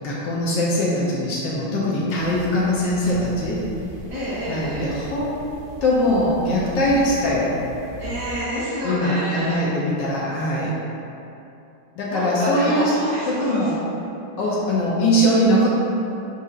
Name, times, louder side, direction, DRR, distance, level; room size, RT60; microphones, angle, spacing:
voice 1, 0.0-3.6 4.5-5.4 5.8-7.5 8.8-10.7 12.0-12.9 13.3-13.8 14.4-15.7, left 1 dB, 70° left, -6 dB, 1.3 m, -21 dB
sound 1, 2.2-8.4, right 2 dB, 75° right, 1.3 m, -39 dB
voice 2, 4.1-4.8 8.0-9.6 12.1-13.6, equal, 25° right, -15 dB, 1.2 m, -28 dB
7.6 x 2.8 x 2.4 m, 2.9 s
omnidirectional pair, 2.1 m